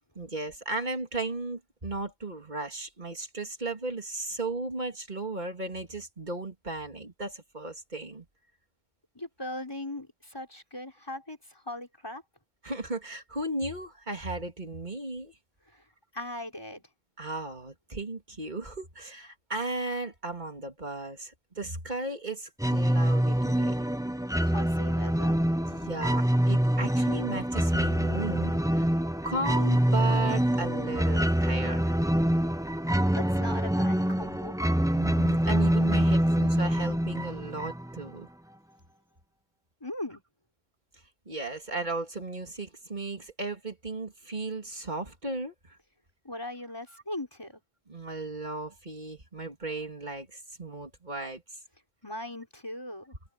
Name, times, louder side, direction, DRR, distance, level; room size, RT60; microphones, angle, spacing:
voice 1, 0.1-8.2 12.6-15.3 17.2-23.8 25.7-28.9 29.2-31.9 34.9-38.3 41.2-45.8 47.9-51.6, right 2 dB, 45° right, 3.2 m, -35 dB
voice 2, 9.2-12.2 15.7-15.9 16.1-16.8 24.4-25.4 33.1-34.6 39.8-40.2 46.2-47.6 52.0-53.2, left 1 dB, 20° left, 5.3 m, -39 dB
sound 1, 22.6-38.1, equal, 5° right, 0.7 m, -25 dB
omnidirectional pair, 1.1 m